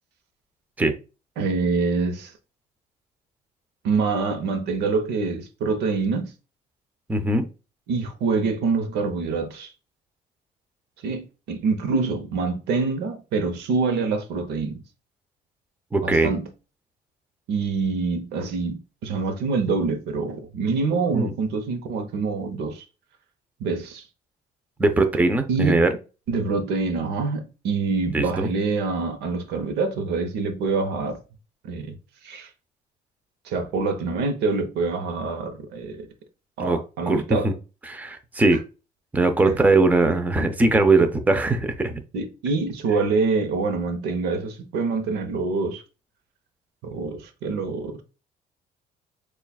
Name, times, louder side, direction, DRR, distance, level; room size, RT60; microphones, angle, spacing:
voice 1, 1.4-2.3 3.8-6.3 7.9-9.7 11.0-14.8 16.0-16.5 17.5-22.9 23.6-24.1 25.5-25.7 26.3-31.2 31.6-32.0 32.2-32.5 33.4-36.1 36.6-37.5 39.5-39.7 42.1-45.8 46.8-48.0, right 4 dB, 80° right, 0.8 m, -25 dB
voice 2, 7.1-7.5 15.9-16.3 21.1-21.3 24.8-25.9 28.1-28.5 36.6-36.8 37.1-37.5 37.8-38.6 39.1-42.0, right 2 dB, 10° right, 0.6 m, -20 dB
6.7 x 2.4 x 2.3 m
cardioid pair, 110°, 17 cm